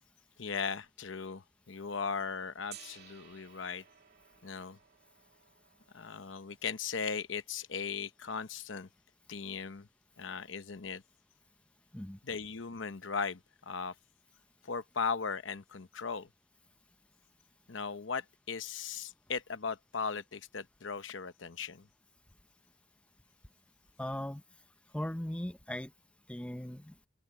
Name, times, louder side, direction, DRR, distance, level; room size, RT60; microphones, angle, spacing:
voice 1, 0.4-3.8 4.4-4.8 5.9-8.9 9.3-9.9 10.2-11.0 12.2-13.9 14.6-16.3 17.7-21.9, left 5 dB, 70° left, 0.9 m, -38 dB
Gong, 2.7-8.6, right 10 dB, 55° right, 2.6 m, -58 dB
voice 2, 24.0-24.4 24.9-25.9 26.3-26.9, left 1 dB, 5° left, 0.6 m, -38 dB
head